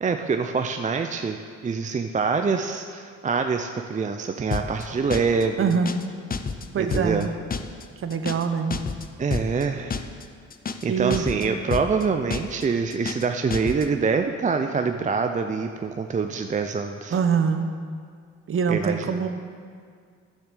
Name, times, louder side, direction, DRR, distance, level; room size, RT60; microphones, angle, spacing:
voice 1, 0.0-5.8 6.8-7.3 9.2-10.0 10.8-17.2 18.7-19.2, right 5 dB, 25° right, 6 dB, 0.5 m, -25 dB
sound 1, 4.5-4.8 5.1-5.4 5.7-6.1 6.3-6.7 6.9-7.2 7.5-7.8 8.1-8.5 8.7-9.1 9.3-9.6 9.9-10.2 10.5-10.9 11.1-11.5 11.7-12.0 12.3-12.6 12.9-13.3 13.5-13.9, left 5 dB, 30° left, 0.7 m, -29 dB
voice 2, 5.6-6.0 6.7-7.3 8.0-8.8 10.9-11.3 17.1-17.7 18.5-19.4, right 6 dB, 45° right, 8 dB, 0.9 m, -24 dB
10.0 x 7.0 x 6.7 m, 2.1 s
cardioid pair, 90°, 30 cm